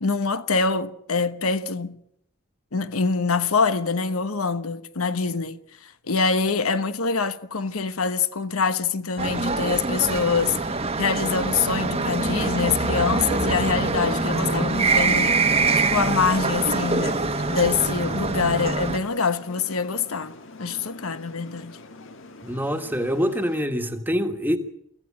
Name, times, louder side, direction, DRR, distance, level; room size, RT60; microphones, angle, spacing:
voice 1, 0.0-2.0 2.7-15.6 15.9-17.2 17.5-21.8, left 5 dB, 90° left, 1.1 m, -25 dB
sound 1, 9.2-19.0, right 3 dB, 30° right, 1.1 m, -24 dB
sound 2, 11.3-23.6, left 2 dB, 65° left, 1.5 m, -40 dB
voice 2, 22.4-24.6, equal, 10° right, 1.5 m, -25 dB
24.5 x 15.0 x 8.6 m
head